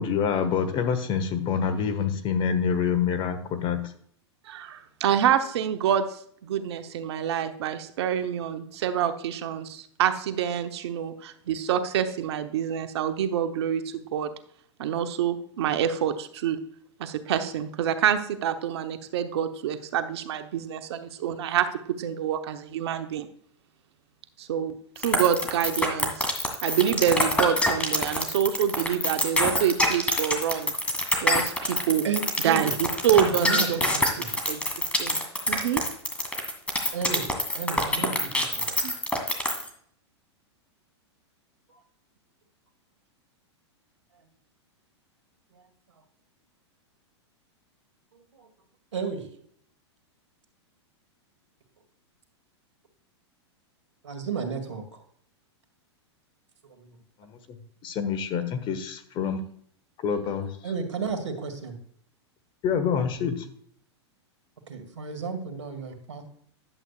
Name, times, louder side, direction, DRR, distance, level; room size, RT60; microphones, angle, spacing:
voice 1, 0.0-3.8 57.2-57.4 57.8-59.4 60.0-60.5 62.6-63.4, left 7 dB, 35° left, 9 dB, 1.3 m, -26 dB
voice 2, 4.4-14.3 14.8-16.6 17.0-21.7 22.0-23.3 24.4-26.3 26.6-30.7 31.2-32.0 32.4-32.8 33.0-33.8 34.5-34.6 35.0-35.2 35.5-35.8 38.8-38.9, right 9 dB, 65° right, 9 dB, 1.0 m, -27 dB
Insects on vinyl, 25.0-39.7, left 1 dB, 10° left, 2.0 m, -25 dB
voice 3, 32.0-32.7 33.1-34.3 36.9-37.2 37.5-38.6 41.7-41.8 48.1-48.5 48.9-49.3 54.0-55.0 56.6-56.9 60.6-61.8 64.7-66.2, right 5 dB, 85° right, 6 dB, 1.9 m, -33 dB
11.0 x 7.9 x 2.4 m, 0.62 s
hypercardioid pair, 115°, 15 cm